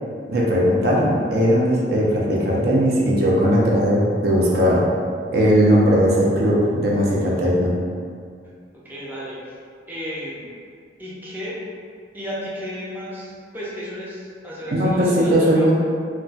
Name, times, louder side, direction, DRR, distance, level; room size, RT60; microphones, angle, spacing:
voice 1, 0.3-4.9 5.3-7.8 14.7-15.7, equal, 60° right, -4 dB, 0.6 m, -18 dB
voice 2, 8.7-9.6 9.9-10.5 11.0-11.6 12.1-15.7, equal, 10° right, -8 dB, 0.5 m, -33 dB
2.2 x 2.2 x 3.9 m, 2.2 s
head